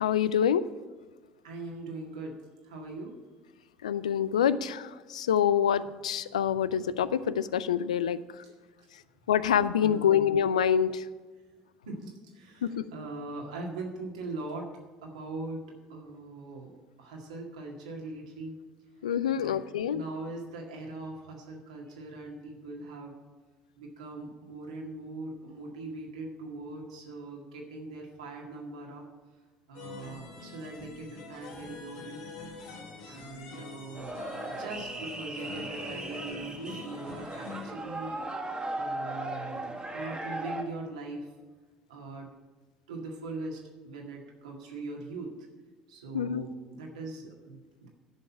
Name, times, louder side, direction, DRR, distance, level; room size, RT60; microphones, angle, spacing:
voice 1, 0.0-0.7 3.8-8.2 9.3-11.0 12.6-12.8 19.0-20.0 46.1-46.4, left 9 dB, 90° left, 16 dB, 0.3 m, -26 dB
voice 2, 1.4-2.4 2.6-3.1 9.8-10.2 11.9-14.7 15.0-18.6 19.3-19.6 19.9-23.2 23.8-29.1 29.7-32.3 33.0-38.2 38.7-41.3 41.9-42.3 42.9-45.5 45.9-47.9, right 2 dB, 85° right, 0 dB, 1.8 m, -41 dB
sound 1, 29.7-37.7, left 4 dB, 75° left, 1.7 m, -45 dB
sound 2, 33.9-40.6, right 2 dB, 25° right, 1.6 m, -37 dB
10.0 x 5.6 x 8.4 m, 1.3 s
hypercardioid pair, 60°, 4 cm